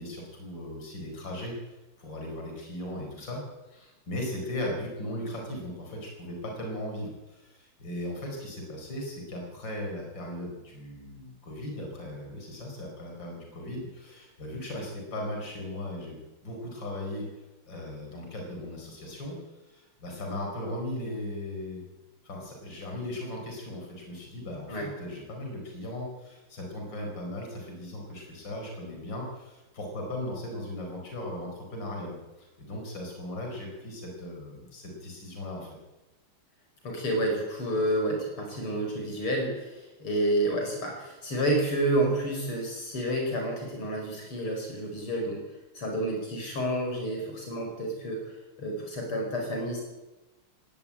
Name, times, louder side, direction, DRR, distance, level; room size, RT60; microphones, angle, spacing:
voice 1, 0.0-3.4 3.7-21.8 22.2-35.8, left 1 dB, 55° left, 1 dB, 5.6 m, -38 dB
voice 2, 36.8-39.7 40.0-45.4 45.8-48.3 48.6-49.8, right 1 dB, 80° left, 2 dB, 6.0 m, -29 dB
18.5 x 18.0 x 8.8 m, 1.1 s
omnidirectional pair, 2.4 m